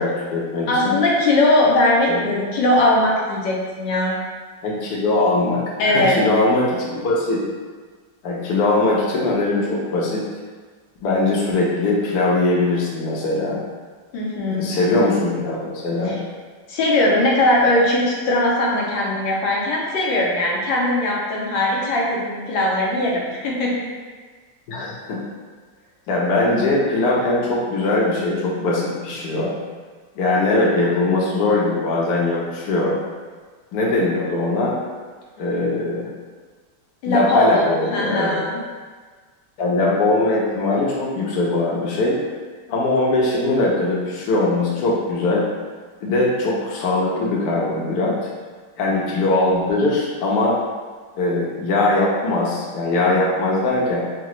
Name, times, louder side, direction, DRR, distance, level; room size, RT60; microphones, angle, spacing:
voice 1, 0.0-0.9 2.1-2.2 4.6-7.4 8.2-10.3 11.0-13.6 14.5-16.2 24.7-25.2 26.1-29.5 30.2-33.0 33.7-34.8 35.4-36.1 37.1-38.4 39.6-42.2 42.7-45.4 46.0-48.2 48.8-50.6 51.1-54.0, left 2 dB, 70° left, -5 dB, 1.2 m, -21 dB
voice 2, 0.7-4.1 5.8-6.2 14.1-14.7 16.0-16.2 16.7-23.9 37.0-37.6 37.9-38.6, left 1 dB, 85° left, -4 dB, 1.5 m, -19 dB
4.7 x 2.2 x 3.0 m, 1.5 s
omnidirectional pair, 1.9 m